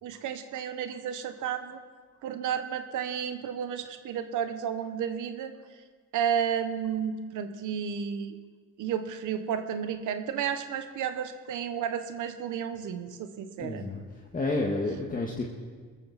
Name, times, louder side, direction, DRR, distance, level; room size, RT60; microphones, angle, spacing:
voice 1, 0.0-1.8 2.2-5.5 6.1-8.3 8.8-13.8, right 8 dB, 80° right, 8 dB, 1.2 m, -32 dB
voice 2, 13.6-14.0 14.3-15.4, left 2 dB, 25° left, -1 dB, 1.9 m, -30 dB
22.5 x 14.0 x 4.2 m, 1.5 s
cardioid pair, 90°, 30 cm